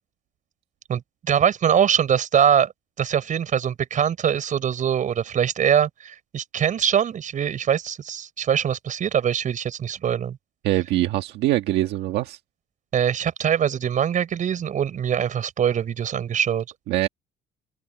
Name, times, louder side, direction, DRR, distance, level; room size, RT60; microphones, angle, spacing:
voice 1, 0.9-2.7 3.0-10.4 12.9-16.6, right 8 dB, 50° right, 5.2 m, -23 dB
voice 2, 10.6-12.4 16.9-17.1, right 15 dB, 85° right, 1.6 m, -23 dB
open air
cardioid pair, 110°, 17 cm